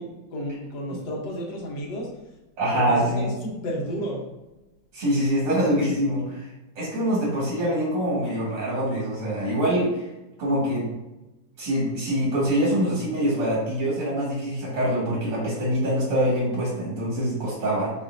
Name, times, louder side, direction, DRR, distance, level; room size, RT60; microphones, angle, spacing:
voice 1, 0.0-2.1 2.7-4.3, equal, 70° left, -2 dB, 1.7 m, -32 dB
voice 2, 2.6-3.3 4.9-6.5 6.8-10.1 10.4-10.9 11.6-17.9, equal, 85° right, -7 dB, 2.5 m, -24 dB
7.6 x 2.6 x 2.6 m, 1.0 s
omnidirectional pair, 2.0 m